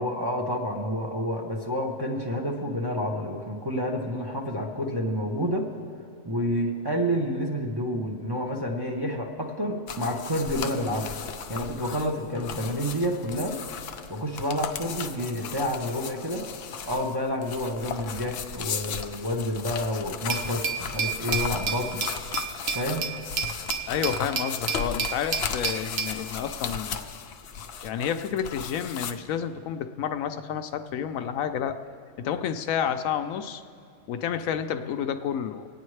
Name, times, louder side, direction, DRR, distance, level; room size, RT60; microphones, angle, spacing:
voice 1, 0.0-5.7 6.2-11.1 11.5-13.6 14.1-16.4 16.8-22.0 22.7-23.1, equal, 20° right, -1 dB, 0.7 m, -29 dB
sound 1, 9.9-29.1, left 7 dB, 60° left, 0.7 m, -36 dB
Glass, 20.3-26.2, right 6 dB, 55° right, 0.9 m, -31 dB
voice 2, 23.9-27.2 27.8-31.8 32.2-33.6 34.1-35.7, left 8 dB, 80° left, 8 dB, 1.0 m, -30 dB
26.5 x 9.1 x 3.2 m, 2.4 s
omnidirectional pair, 1.4 m